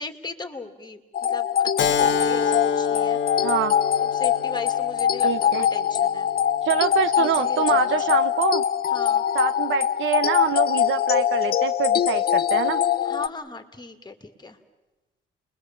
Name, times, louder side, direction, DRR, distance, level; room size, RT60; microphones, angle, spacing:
voice 1, 0.0-3.2 4.0-6.3 7.2-8.2 8.9-9.3 13.0-14.6, left 3 dB, 20° left, 6 dB, 2.3 m, -37 dB
sound 1, 1.1-13.3, left 9 dB, 50° left, 0.7 m, -23 dB
Keyboard (musical), 1.8-6.9, left 6 dB, 70° left, 1.4 m, -29 dB
voice 2, 3.4-3.7 5.2-5.7 6.6-8.6 9.3-12.8, right 9 dB, 75° right, 12 dB, 1.0 m, -25 dB
29.5 x 22.0 x 7.3 m, 1.1 s
cardioid pair, 90°, 20 cm